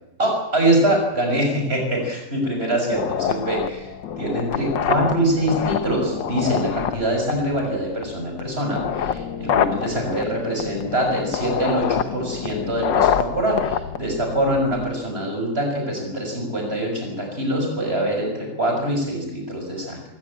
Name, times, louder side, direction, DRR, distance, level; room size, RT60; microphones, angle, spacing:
voice 1, 0.2-20.0, right 1 dB, 30° right, 2 dB, 6.8 m, -24 dB
sound 1, 2.9-14.9, left 8 dB, 85° left, 1.8 m, -26 dB
21.5 x 18.0 x 8.7 m, 0.97 s
omnidirectional pair, 1.9 m